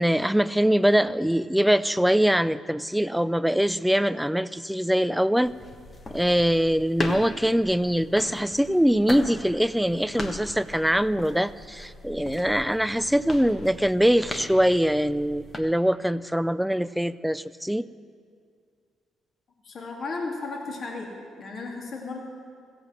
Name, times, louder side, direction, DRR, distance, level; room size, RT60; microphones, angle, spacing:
voice 1, 0.0-5.5 6.1-17.9, equal, 5° right, 16 dB, 0.3 m, -23 dB
sound 1, 5.4-15.6, left 2 dB, 35° left, 1.3 m, -38 dB
voice 2, 19.6-21.1 21.4-22.2, left 3 dB, 50° left, 0 dB, 2.0 m, -34 dB
15.0 x 8.0 x 7.8 m, 2.2 s
cardioid pair, 90°, 0 cm